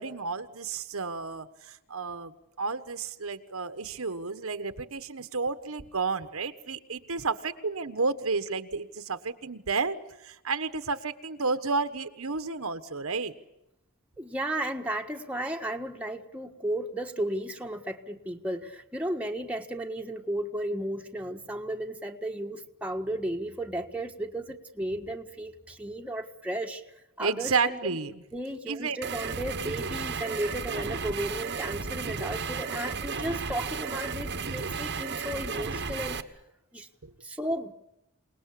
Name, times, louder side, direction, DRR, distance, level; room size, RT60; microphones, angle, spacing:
voice 1, 0.0-2.3 2.6-10.0 10.2-13.3 27.2-28.1 28.7-29.0 37.0-37.1, right 4 dB, 70° right, 10 dB, 1.3 m, -31 dB
voice 2, 14.2-26.8 27.2-28.0 28.3-36.2 36.7-36.9 37.2-37.7, right 1 dB, 5° right, 2 dB, 1.5 m, -34 dB
sound 1, 29.0-36.2, right 5 dB, 50° right, 1.2 m, -34 dB
27.5 x 19.5 x 8.5 m, 0.88 s
head